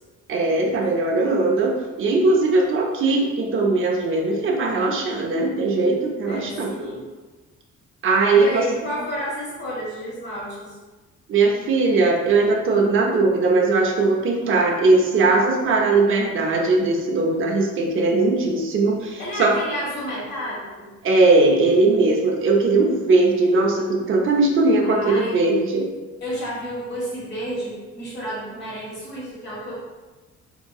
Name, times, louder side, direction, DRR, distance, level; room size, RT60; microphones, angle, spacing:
voice 1, 0.3-6.7 8.0-8.9 11.3-19.6 21.0-25.9, right 3 dB, 45° right, -1 dB, 0.6 m, -19 dB
voice 2, 6.3-7.0 8.3-10.7 19.2-20.9 24.8-25.4 26.2-29.8, equal, 35° left, -8 dB, 1.3 m, -31 dB
3.8 x 2.7 x 2.3 m, 1.2 s
cardioid pair, 90°, 30 cm